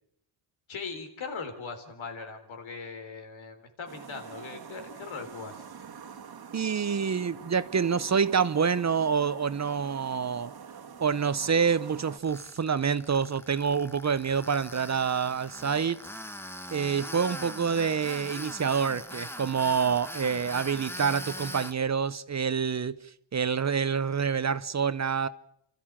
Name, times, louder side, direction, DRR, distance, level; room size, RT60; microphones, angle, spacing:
voice 1, 0.7-5.6, left 5 dB, 75° left, 3.8 m, -40 dB
sound 1, 3.9-12.2, right 7 dB, 50° right, 1.7 m, -46 dB
voice 2, 6.5-10.5 11.0-16.0 16.7-23.0 23.3-25.3, right 6 dB, 35° right, 0.8 m, -27 dB
Tools, 12.2-21.7, left 1 dB, 5° left, 1.1 m, -41 dB
29.0 x 13.5 x 7.4 m
cardioid pair, 95°, 47 cm